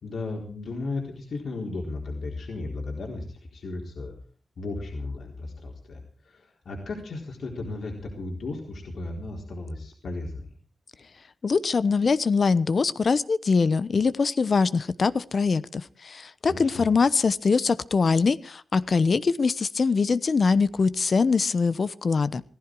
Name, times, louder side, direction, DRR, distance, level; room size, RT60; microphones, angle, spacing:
voice 1, 0.0-4.1 4.6-10.5 16.5-16.9, left 3 dB, 75° left, 0 dB, 4.1 m, -35 dB
voice 2, 11.4-22.4, left 4 dB, 50° left, 16 dB, 0.9 m, -23 dB
18.0 x 15.0 x 4.8 m, 0.43 s
wide cardioid pair, 130°, 0 cm